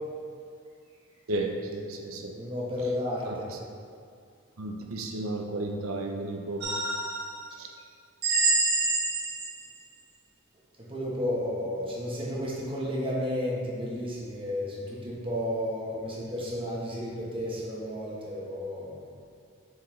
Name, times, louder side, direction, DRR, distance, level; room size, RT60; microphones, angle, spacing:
voice 1, 1.3-2.3 3.2-3.6 4.6-6.6 7.6-7.7, right 2 dB, 80° right, 2 dB, 0.7 m, -33 dB
voice 2, 2.3-3.5 10.9-18.9, left 1 dB, 25° right, -6 dB, 1.2 m, -32 dB
sound 1, 6.6-7.4 8.2-9.7, right 3 dB, 50° right, 1.1 m, -26 dB
7.0 x 4.4 x 3.2 m, 2.3 s
head